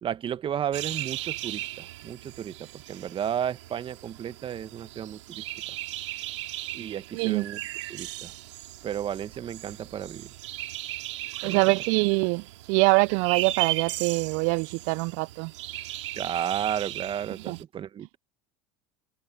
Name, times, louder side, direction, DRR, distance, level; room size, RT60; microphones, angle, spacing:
voice 1, 0.0-5.4 6.7-7.6 7.9-8.3 8.8-10.3 11.4-11.7 16.2-18.2, right 9 dB, 35° right, 1.4 m, -33 dB
sound 1, 0.7-17.6, right 15 dB, 80° right, 3.6 m, -37 dB
voice 2, 7.1-7.5 11.4-12.4 12.7-15.5 17.5-17.6, right 31 dB, 60° right, 0.4 m, -24 dB
hypercardioid pair, 95°, 15 cm